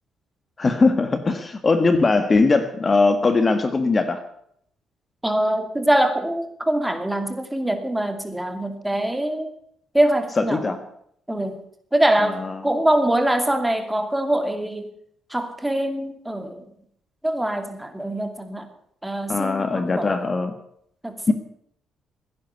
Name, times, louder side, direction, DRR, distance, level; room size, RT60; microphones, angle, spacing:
voice 1, 0.6-4.2 10.4-10.8 12.2-12.6 19.3-20.5 21.3-21.4, left 3 dB, 30° left, 9 dB, 1.5 m, -20 dB
voice 2, 5.2-9.5 9.9-10.8 11.3-11.6 11.9-14.9 15.3-16.6 17.2-18.7 19.0-20.1 21.0-21.3, right 1 dB, 5° right, 7 dB, 2.6 m, -23 dB
16.5 x 10.5 x 8.2 m, 0.69 s
cardioid pair, 90°, 0 cm